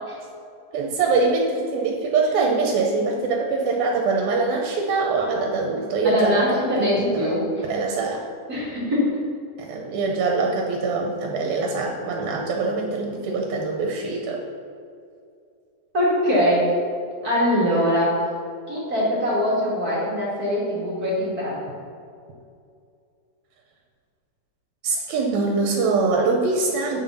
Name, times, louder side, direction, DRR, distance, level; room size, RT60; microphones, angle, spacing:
voice 1, 0.7-6.4 6.8-6.9 7.1-8.2 9.6-14.4 24.8-27.0, right 4 dB, 80° right, 0 dB, 2.6 m, -23 dB
voice 2, 6.0-7.5 8.5-9.2 9.7-9.8 15.9-16.7 17.2-18.2 18.7-21.7, equal, 35° right, -7 dB, 1.7 m, -22 dB
9.3 x 5.8 x 5.6 m, 2.4 s
omnidirectional pair, 4.4 m